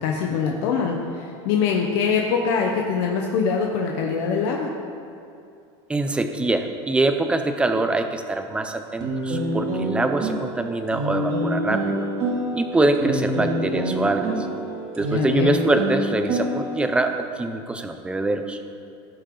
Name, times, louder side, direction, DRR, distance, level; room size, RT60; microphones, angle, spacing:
voice 1, 0.0-4.7 15.1-15.6, left 6 dB, 65° left, 0 dB, 1.1 m, -23 dB
voice 2, 5.9-12.0 12.5-14.3 15.0-18.6, right 2 dB, 5° right, 7 dB, 0.5 m, -24 dB
sound 1, 9.0-17.1, right 1 dB, 40° right, 2.4 m, -26 dB
17.5 x 7.0 x 3.9 m, 2.5 s
supercardioid pair, 160°, 15 cm